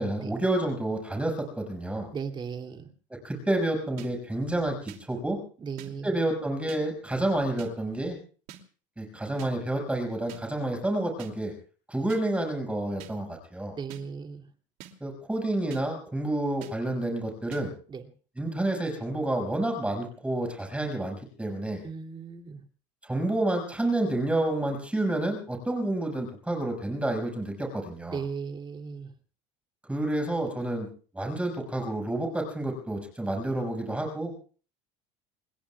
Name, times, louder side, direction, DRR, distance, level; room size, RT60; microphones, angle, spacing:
voice 1, 0.0-2.1 3.2-5.4 6.0-8.2 9.0-11.5 11.9-13.8 15.0-17.7 18.4-21.8 23.0-28.2 29.9-30.9 31.1-34.3, right 1 dB, 10° right, 3 dB, 5.8 m, -29 dB
voice 2, 2.1-2.9 5.6-6.2 13.8-14.5 17.9-18.0 21.8-22.6 28.0-29.1, right 6 dB, 30° right, 4 dB, 2.7 m, -37 dB
sound 1, 4.0-4.1 4.9-5.0 5.8-5.9 6.7-6.8 7.6-7.7 8.5-8.6 9.4-9.5 10.3-10.4 11.2-11.3 12.1-12.2 13.0-13.1 13.9-14.0 14.8-14.9 15.7-15.8 16.6-16.7 17.5-17.6, right 11 dB, 75° right, 2.7 m, -45 dB
29.0 x 21.5 x 2.4 m, 0.41 s
supercardioid pair, 110°, 15 cm